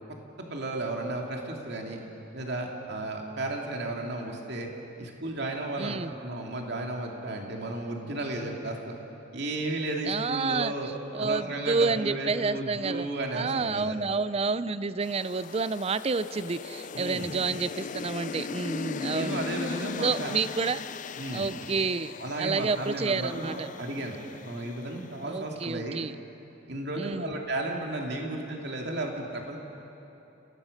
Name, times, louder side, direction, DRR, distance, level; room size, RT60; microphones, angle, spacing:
voice 1, 0.5-2.0 2.3-4.7 5.0-8.9 9.3-10.9 11.2-14.0 16.9-17.3 19.1-20.3 21.2-21.5 22.2-24.2 24.4-26.0 26.7-29.6, right 2 dB, 60° right, 1 dB, 2.5 m, -33 dB
voice 2, 5.8-6.1 10.0-19.4 20.0-20.8 21.3-22.1 22.4-23.7 25.2-26.1 27.0-27.3, right 4 dB, 30° right, 15 dB, 0.5 m, -29 dB
sound 1, 15.0-25.4, left 5 dB, 40° left, 0.4 m, -39 dB
30.0 x 17.5 x 6.5 m, 3.0 s
head